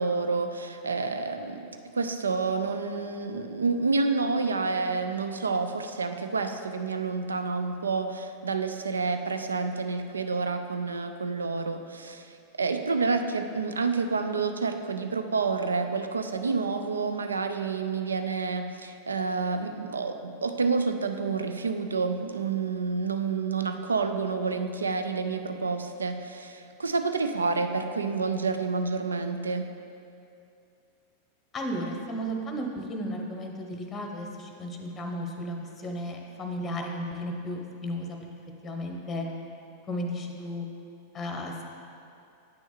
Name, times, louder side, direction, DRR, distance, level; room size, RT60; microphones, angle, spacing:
voice 1, 0.0-1.7 1.9-12.3 12.6-29.7, right 4 dB, 75° right, 7 dB, 0.4 m, -29 dB
voice 2, 31.5-38.2 38.6-39.3 39.9-40.7 41.1-41.6, equal, 20° left, 2 dB, 0.8 m, -34 dB
8.5 x 6.1 x 3.4 m, 2.6 s
figure-of-eight pair, 90°, 0 cm